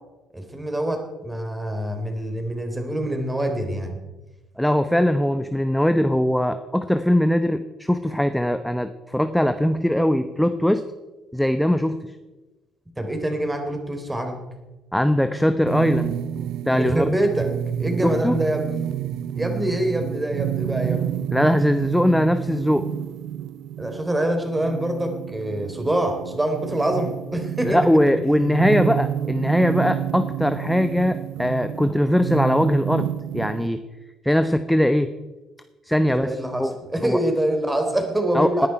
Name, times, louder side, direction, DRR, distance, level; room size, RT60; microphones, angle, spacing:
voice 1, 0.3-4.0 13.0-14.4 16.7-17.5 17.8-18.7 19.4-21.0 23.8-27.9 36.1-38.7, right 1 dB, 15° right, 5 dB, 3.6 m, -25 dB
voice 2, 4.6-10.8 11.3-12.0 14.9-16.1 16.7-17.2 18.0-18.4 21.3-22.8 27.6-33.8 34.2-35.1 35.9-36.7 37.0-37.2 38.3-38.7, equal, 5° left, 9 dB, 0.9 m, -21 dB
sound 1, 15.7-33.7, right 10 dB, 65° right, 0.6 m, -29 dB
19.0 x 10.5 x 4.7 m, 1.1 s
hypercardioid pair, 50°, 0 cm